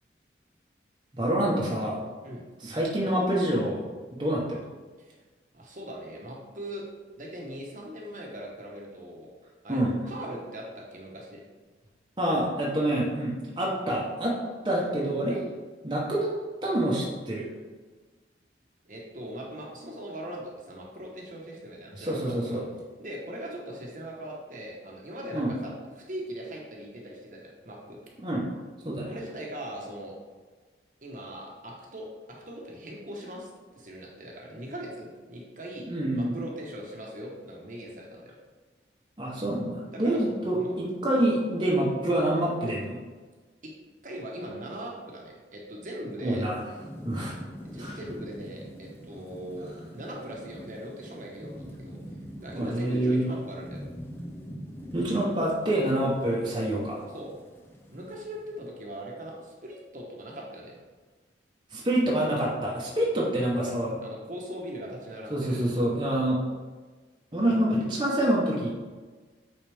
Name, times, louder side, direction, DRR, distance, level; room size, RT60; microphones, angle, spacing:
voice 1, 1.1-2.0 2.6-3.8 4.2-4.6 9.7-9.9 12.2-14.4 14.6-15.4 15.8-16.3 16.6-17.4 22.0-22.6 25.3-25.5 28.2-28.5 28.8-29.2 35.9-36.4 39.2-43.0 46.2-46.6 47.0-47.4 47.8-48.0 52.5-53.2 54.9-57.0 61.7-64.0 65.3-66.4 67.3-68.7, right 1 dB, 25° right, -5 dB, 1.0 m, -26 dB
voice 2, 5.5-6.9 7.2-9.3 9.6-9.8 10.1-11.4 18.8-22.6 23.0-28.0 29.0-30.1 31.0-38.3 39.9-40.7 43.6-43.7 44.0-46.5 47.7-52.0 52.4-53.8 55.2-55.4 57.1-57.3 57.9-60.8 64.0-65.6, right 1 dB, 45° right, -2 dB, 1.1 m, -40 dB
Thunderstorm / Rain, 46.3-58.6, equal, 10° left, 0.5 m, -44 dB
8.7 x 4.0 x 3.5 m, 1.4 s
head